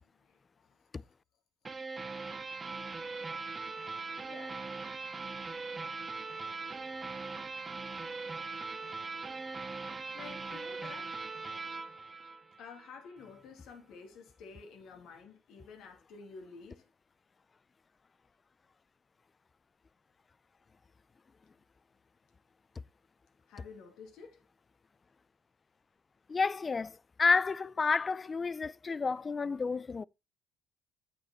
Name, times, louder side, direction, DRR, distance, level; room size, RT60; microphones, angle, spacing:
voice 1, 0.0-0.7 4.3-4.6 10.1-11.2 12.6-16.9 23.5-24.4, left 5 dB, 70° left, 2.5 m, -51 dB
sound 1, 1.6-12.9, right 4 dB, 30° right, 1.6 m, -40 dB
voice 2, 26.3-30.0, left 4 dB, 35° left, 0.4 m, -30 dB
9.3 x 8.7 x 2.9 m
hypercardioid pair, 60°, 0 cm